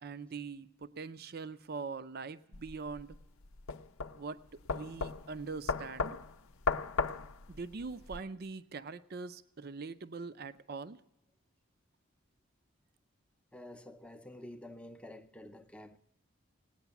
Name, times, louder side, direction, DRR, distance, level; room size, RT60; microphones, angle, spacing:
voice 1, 0.0-3.2 4.1-4.4 4.7-6.2 7.5-11.0, right 4 dB, 45° right, 0.5 m, -42 dB
sound 1, 2.5-8.2, left 4 dB, 80° left, 0.6 m, -36 dB
voice 2, 13.5-16.0, left 1 dB, 5° left, 0.5 m, -49 dB
18.5 x 9.2 x 6.9 m
head